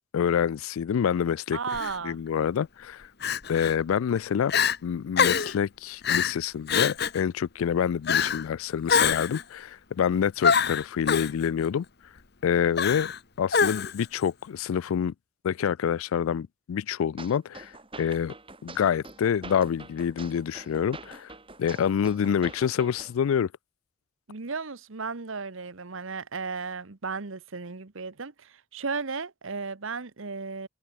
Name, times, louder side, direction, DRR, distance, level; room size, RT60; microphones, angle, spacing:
voice 1, 0.1-1.6 2.0-3.1 3.5-4.5 4.8-11.8 12.4-13.1 13.4-15.1 15.4-17.7 18.0-18.3 18.6-21.3 21.6-23.5, left 8 dB, 80° left, 0.3 m, -27 dB
voice 2, 1.5-2.2 24.3-30.7, right 4 dB, 70° right, 1.1 m, -34 dB
Crying sobbing, 1.7-2.0 3.2-3.7 4.2-4.3 4.5-4.8 5.2-5.6 6.0-6.4 6.7-7.2 8.1-8.4 8.9-9.4 10.4-11.3 12.8-13.2 13.5-14.0, left 6 dB, 50° left, 1.2 m, -24 dB
sound 1, 17.2-23.2, right 3 dB, 25° right, 6.9 m, -45 dB
head